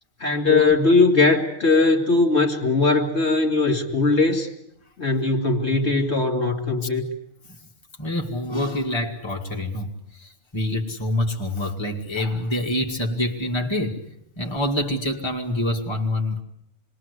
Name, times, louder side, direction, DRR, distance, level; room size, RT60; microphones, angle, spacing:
voice 1, 0.2-4.5 5.0-7.0, left 3 dB, 55° left, 3 dB, 2.7 m, -20 dB
voice 2, 8.0-14.0 14.4-16.4, left 1 dB, 20° left, 0 dB, 2.3 m, -26 dB
27.0 x 22.0 x 8.3 m, 0.75 s
omnidirectional pair, 1.4 m